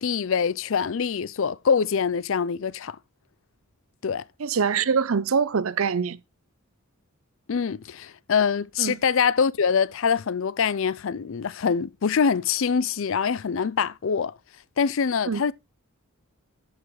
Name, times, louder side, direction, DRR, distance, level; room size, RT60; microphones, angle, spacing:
voice 1, 0.0-3.0 4.0-4.2 7.5-14.3 14.8-15.5, left 6 dB, 60° left, 0.5 m, -24 dB
voice 2, 4.4-6.2 8.8-9.0 15.3-15.4, right 6 dB, 70° right, 0.6 m, -24 dB
13.5 x 5.9 x 3.1 m
head